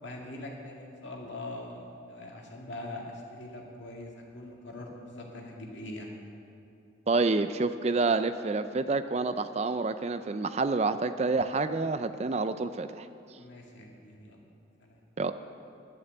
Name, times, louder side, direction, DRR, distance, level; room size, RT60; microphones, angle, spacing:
voice 1, 0.0-6.1 13.4-14.4 14.8-15.0, left 1 dB, 70° left, -1 dB, 2.3 m, -42 dB
voice 2, 7.1-13.1 15.2-15.3, right 3 dB, 35° right, 11 dB, 0.4 m, -28 dB
11.0 x 10.5 x 8.0 m, 2.6 s
head